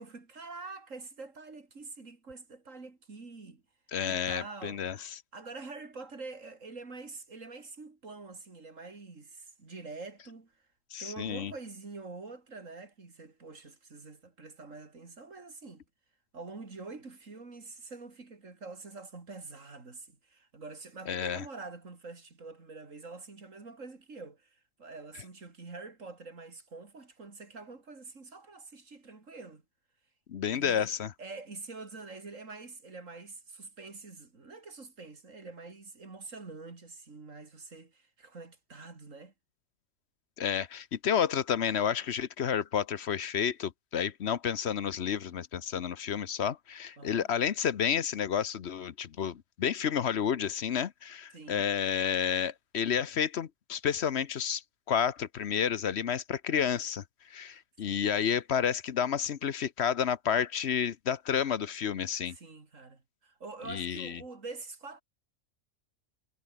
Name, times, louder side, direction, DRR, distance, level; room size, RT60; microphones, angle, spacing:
voice 1, 0.0-3.6 4.0-10.5 11.0-15.8 16.3-29.6 30.5-30.9 31.2-39.3 47.0-47.3 51.3-51.7 57.8-58.1 62.3-65.0, right 3 dB, 75° right, 3.4 m, -46 dB
voice 2, 3.9-5.0 10.9-11.5 21.1-21.4 30.3-31.1 40.4-54.6 54.9-57.0 57.3-62.4 63.7-64.2, left 8 dB, 60° left, 1.1 m, -30 dB
omnidirectional pair, 1.3 m